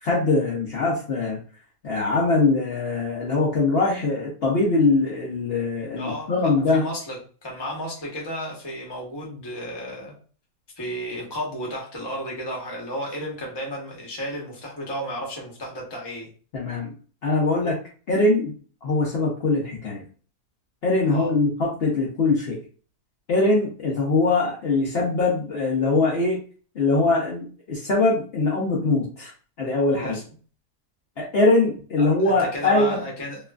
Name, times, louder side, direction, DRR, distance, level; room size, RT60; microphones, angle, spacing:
voice 1, 0.0-1.4 1.8-6.8 16.5-16.9 17.2-17.8 18.1-18.5 18.8-20.0 20.8-22.6 23.3-26.4 26.8-29.3 29.6-30.2 31.2-33.0, left 3 dB, 80° left, -4 dB, 0.5 m, -22 dB
voice 2, 5.9-10.2 10.8-16.3 21.0-21.3 29.9-30.2 32.0-33.4, equal, 25° left, -2 dB, 0.5 m, -33 dB
2.9 x 2.4 x 2.2 m, 0.39 s
omnidirectional pair, 1.8 m